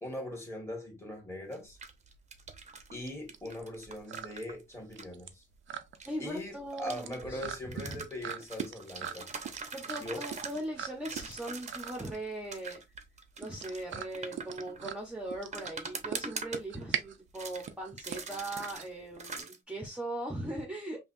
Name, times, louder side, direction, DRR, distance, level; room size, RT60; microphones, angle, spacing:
voice 1, 0.0-1.8 2.9-5.4 6.2-9.3 10.0-10.2, left 1 dB, 15° left, 1.6 m, -40 dB
sound 1, 1.5-2.9 3.3-5.0 6.0-7.2 7.7-10.7 11.0-12.2 12.5-14.9 15.5-17.0 17.3-17.7 18.0-18.9 19.2-19.6, right 4 dB, 35° right, 0.7 m, -43 dB
sound 2, 1.6-19.4, right 9 dB, 75° right, 0.5 m, -42 dB
voice 2, 6.0-7.4 7.7-8.0 9.7-12.8 13.4-21.1, right 1 dB, 5° right, 0.9 m, -39 dB
5.5 x 2.4 x 2.6 m
wide cardioid pair, 135°, 20 cm